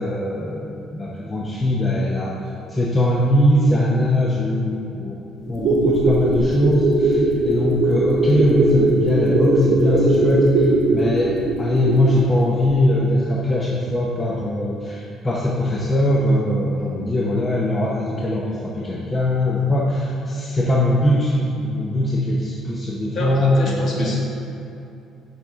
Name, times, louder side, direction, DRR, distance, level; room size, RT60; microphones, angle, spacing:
voice 1, 0.0-2.3 2.7-5.2 5.5-11.3 11.6-24.1, left 1 dB, 20° left, -5 dB, 0.7 m, -21 dB
sound 1, 5.5-12.3 12.6-12.7, right 2 dB, 50° right, 1.4 m, -19 dB
voice 2, 23.1-24.2, left 1 dB, 45° left, -4 dB, 1.5 m, -26 dB
7.8 x 5.9 x 3.5 m, 2.7 s
cardioid pair, 150°, 0 cm